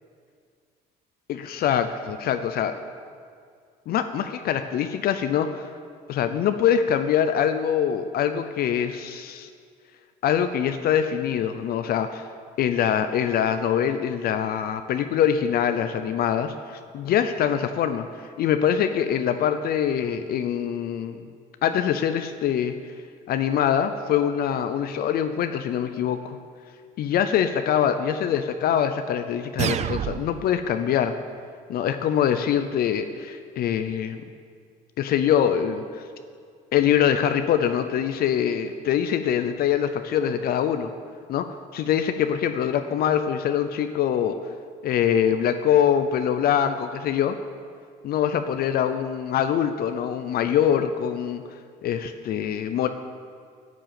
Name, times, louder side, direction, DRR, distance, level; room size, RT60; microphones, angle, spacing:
voice 1, 1.3-2.7 3.9-5.7 6.1-9.5 10.2-12.3 12.6-21.2 21.6-22.7 23.3-26.4 27.0-31.1 31.7-34.2 35.0-36.1 36.7-40.9 41.3-41.5 41.7-44.4 44.8-47.4 48.0-51.4 51.8-52.9, left 9 dB, 65° left, 9 dB, 0.6 m, -24 dB
sound 1, 29.6-30.6, right 10 dB, 40° right, 0.4 m, -27 dB
11.5 x 7.6 x 7.7 m, 2.1 s
cardioid pair, 110°, 17 cm